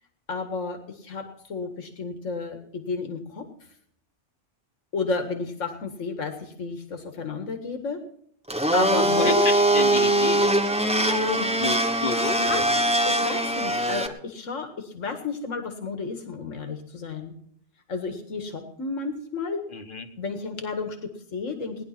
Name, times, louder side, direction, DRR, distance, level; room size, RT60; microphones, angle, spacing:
voice 1, 0.3-3.4 4.9-8.0 8.7-9.5 11.1-11.5 12.4-12.6 13.1-17.3 17.9-19.6 20.2-21.8, left 4 dB, 80° left, 7 dB, 2.2 m, -31 dB
Domestic sounds home sounds, 8.5-14.1, right 1 dB, 5° right, 1.2 m, -22 dB
voice 2, 8.9-10.4 11.6-12.6 19.7-20.1, left 3 dB, 45° left, 6 dB, 1.5 m, -30 dB
18.5 x 10.5 x 5.9 m, 0.65 s
omnidirectional pair, 1.3 m